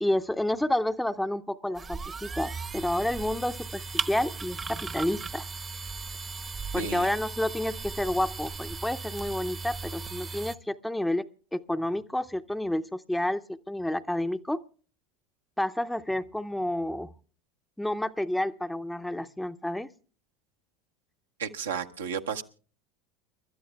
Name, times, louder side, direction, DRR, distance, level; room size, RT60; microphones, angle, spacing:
voice 1, 0.0-5.5 6.7-14.6 15.6-17.1 17.8-19.9, left 1 dB, 5° left, 0.7 m, -30 dB
sound 1, 1.7-10.6, right 4 dB, 25° right, 0.9 m, -37 dB
voice 2, 6.8-7.1 21.4-22.4, right 6 dB, 75° right, 1.0 m, -33 dB
30.0 x 12.5 x 2.2 m
figure-of-eight pair, 75°, 0 cm